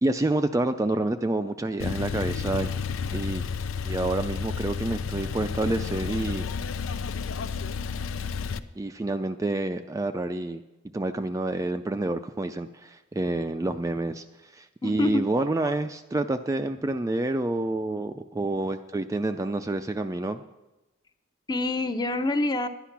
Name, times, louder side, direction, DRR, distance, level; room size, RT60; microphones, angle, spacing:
voice 1, 0.0-2.7 3.1-3.4 3.8-6.5 8.8-10.6 10.9-14.2 14.5-20.4, right 2 dB, 15° right, 8 dB, 0.4 m, -28 dB
Male speech man speaking / Car / Idling, 1.8-8.6, left 5 dB, 90° left, 0.5 m, -31 dB
voice 2, 14.8-15.7 21.5-22.7, left 2 dB, 20° left, 9 dB, 0.7 m, -27 dB
11.0 x 10.0 x 5.9 m, 1.0 s
head